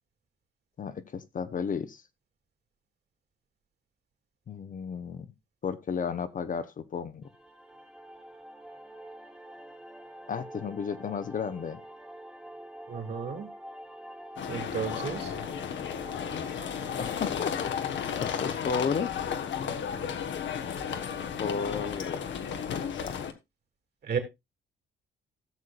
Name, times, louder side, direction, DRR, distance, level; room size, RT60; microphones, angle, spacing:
voice 1, 0.8-2.0 4.5-5.3 5.6-7.3 10.3-11.8 17.0-17.7 18.2-19.2 21.4-22.2 23.0-23.2, left 6 dB, 40° left, 0.8 m, -33 dB
sound 1, 7.2-18.3, right 1 dB, 5° right, 1.2 m, -47 dB
voice 2, 12.9-13.5 14.5-15.4 24.0-24.2, right 6 dB, 55° right, 2.7 m, -33 dB
sound 2, 14.4-23.3, left 7 dB, 65° left, 1.2 m, -33 dB
16.5 x 6.4 x 2.4 m
cardioid pair, 90°, 20 cm